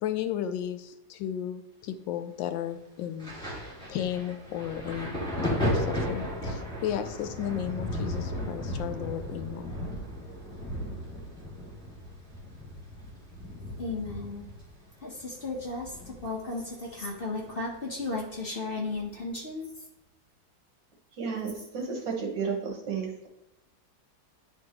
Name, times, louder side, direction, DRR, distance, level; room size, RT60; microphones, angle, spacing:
voice 1, 0.0-3.3 3.9-5.2 5.4-9.8, left 10 dB, 85° left, 10 dB, 1.3 m, -34 dB
Thunder, 3.2-16.6 16.8-18.2 19.0-19.2, left 1 dB, ahead, 2.2 m, -35 dB
voice 2, 13.8-14.5 15.0-19.7, left 3 dB, 40° left, -1 dB, 0.9 m, -35 dB
voice 3, 21.2-23.3, right 5 dB, 80° right, 1 dB, 2.1 m, -32 dB
9.5 x 4.5 x 2.9 m, 0.90 s
omnidirectional pair, 2.0 m